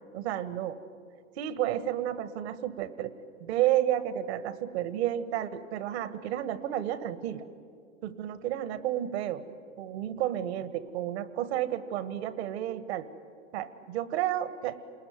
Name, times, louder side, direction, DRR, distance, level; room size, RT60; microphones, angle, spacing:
voice 1, 0.1-0.8 1.4-3.1 3.4-7.4 8.0-9.4 9.8-13.1 13.5-14.8, right 12 dB, 55° right, 13 dB, 1.6 m, -31 dB
28.5 x 20.5 x 9.5 m, 2.3 s
figure-of-eight pair, 95°, 38 cm